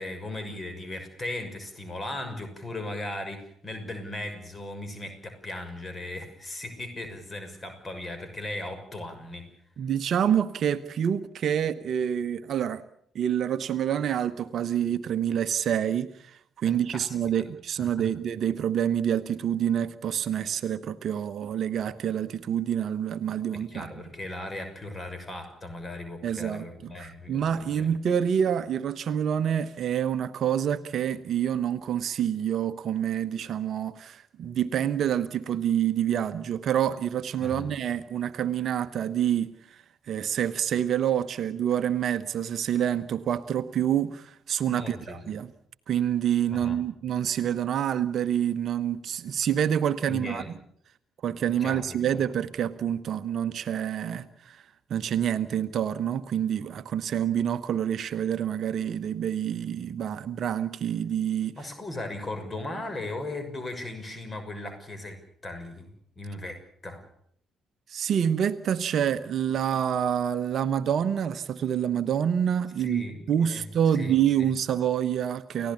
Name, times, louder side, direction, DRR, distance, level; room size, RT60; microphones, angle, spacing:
voice 1, 0.0-9.5 16.6-17.1 17.8-18.1 23.5-27.9 37.4-37.7 44.7-45.2 46.5-46.8 50.1-50.5 51.6-51.9 61.6-65.8 66.2-67.0 72.8-73.6 73.9-74.5, left 2 dB, 25° left, 8 dB, 6.3 m, -37 dB
voice 2, 9.8-12.8 13.1-23.9 26.2-45.5 45.9-50.5 51.2-54.6 54.9-61.6 67.9-75.7, right 9 dB, 50° right, 13 dB, 1.0 m, -27 dB
30.0 x 16.5 x 7.0 m, 0.67 s
figure-of-eight pair, 45°, 0 cm